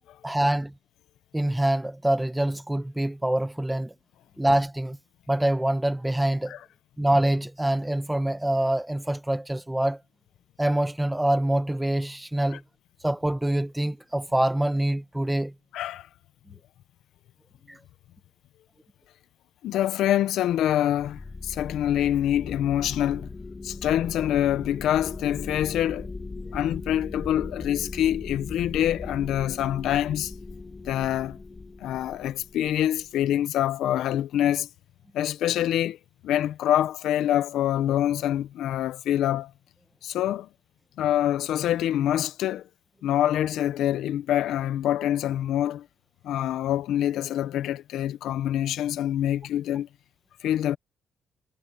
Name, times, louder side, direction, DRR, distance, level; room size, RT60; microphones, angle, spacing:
voice 1, 0.2-0.7 1.3-3.9 4.4-5.0 5.3-6.6 7.0-10.0 10.6-12.6 13.0-15.5 17.7-17.8, right 1 dB, 10° right, 1.4 m, -25 dB
voice 2, 15.7-16.1 19.6-23.3 23.6-26.1 26.5-30.3 30.8-31.4 31.8-34.7 35.1-36.0 36.2-39.5 40.0-40.5 41.0-42.7 43.0-45.9 46.2-49.9 50.4-50.8, left 11 dB, 80° left, 1.1 m, -25 dB
sound 1, 21.0-33.2, left 3 dB, 25° left, 1.7 m, -39 dB
cardioid pair, 90°, 0 cm